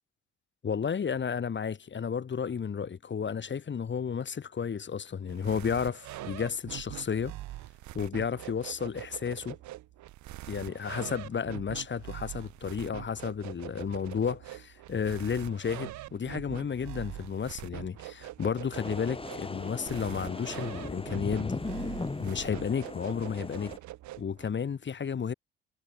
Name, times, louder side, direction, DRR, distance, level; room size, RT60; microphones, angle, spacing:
voice 1, 0.6-7.3 7.9-9.6 10.5-21.6 22.2-23.7 24.2-25.3, left 7 dB, 35° left, 2.1 m, -32 dB
sound 1, 5.3-24.5, right 15 dB, 60° right, 4.6 m, -43 dB
sound 2, 18.7-23.8, left 3 dB, 15° left, 2.9 m, -38 dB
figure-of-eight pair, 50°, 32 cm